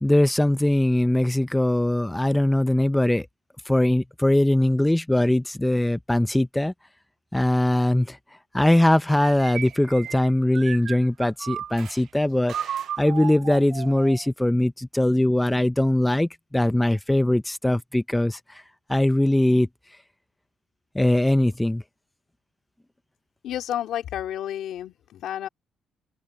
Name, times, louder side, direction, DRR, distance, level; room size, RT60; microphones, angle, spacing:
voice 1, 0.0-3.3 3.7-6.7 7.3-8.2 8.5-18.6 18.9-19.7 20.9-21.8, left 1 dB, 10° left, 0.6 m, -21 dB
sound 1, 9.1-12.0 12.5-14.3, right 9 dB, 70° right, 0.3 m, -34 dB
voice 2, 23.4-25.5, left 11 dB, 75° left, 2.5 m, -31 dB
open air
cardioid pair, 90°, 0 cm